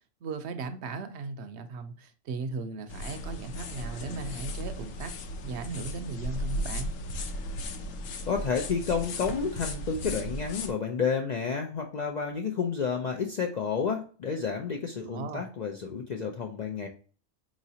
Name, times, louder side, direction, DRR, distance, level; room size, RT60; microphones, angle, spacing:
voice 1, 0.2-5.1 5.4-6.9 15.0-15.5, right 4 dB, 65° right, 0.8 m, -37 dB
sound 1, 2.9-10.7, left 1 dB, 90° left, 1.0 m, -36 dB
voice 2, 8.3-16.9, left 6 dB, 70° left, 0.4 m, -30 dB
4.8 x 3.1 x 2.7 m
omnidirectional pair, 1.3 m